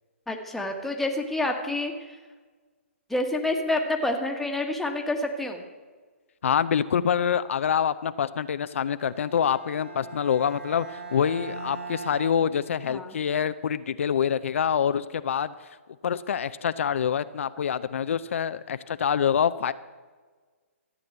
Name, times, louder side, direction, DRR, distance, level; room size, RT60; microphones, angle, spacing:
voice 1, 0.3-2.2 3.1-5.6 12.9-13.2, left 2 dB, 5° left, 2 dB, 1.4 m, -28 dB
voice 2, 6.4-15.5 16.0-19.7, left 8 dB, 65° left, 12 dB, 0.5 m, -26 dB
Bowed string instrument, 9.0-13.2, right 3 dB, 75° right, 4.7 m, -40 dB
14.0 x 8.6 x 7.9 m, 1.4 s
hypercardioid pair, 140°, 7 cm